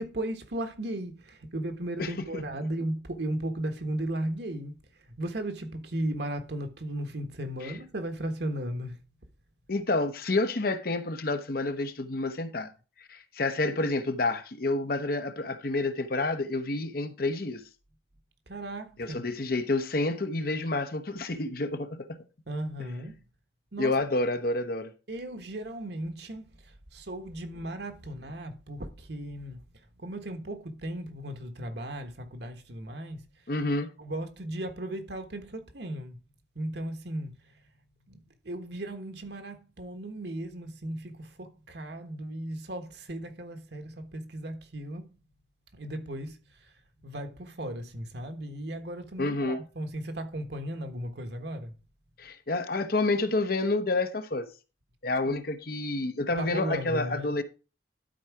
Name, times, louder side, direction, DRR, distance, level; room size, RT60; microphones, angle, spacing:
voice 1, 0.0-9.0 18.5-19.3 22.5-23.2 23.7-23.9 25.1-33.3 34.0-36.2 36.5-37.6 38.1-38.2 38.4-45.1 45.7-46.7 47.0-51.8 55.3-55.4 56.4-57.3, right 1 dB, 60° right, 1.4 m, -36 dB
voice 2, 9.7-12.7 13.1-17.6 19.0-22.1 23.8-24.9 33.5-33.9 49.2-49.6 52.2-54.5 55.0-57.4, left 2 dB, 50° left, 0.9 m, -29 dB
12.0 x 4.7 x 4.7 m
head